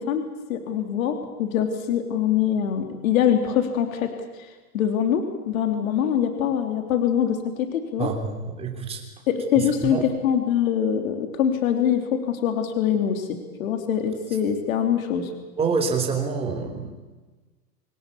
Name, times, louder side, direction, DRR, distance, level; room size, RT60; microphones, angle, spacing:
voice 1, 0.0-4.1 4.7-8.1 9.3-15.3, left 9 dB, 55° left, 6 dB, 3.4 m, -24 dB
voice 2, 8.0-9.0 9.8-10.0 15.6-16.9, right 5 dB, 10° right, 3 dB, 3.2 m, -26 dB
26.5 x 17.0 x 8.5 m, 1.3 s
hypercardioid pair, 155°, 48 cm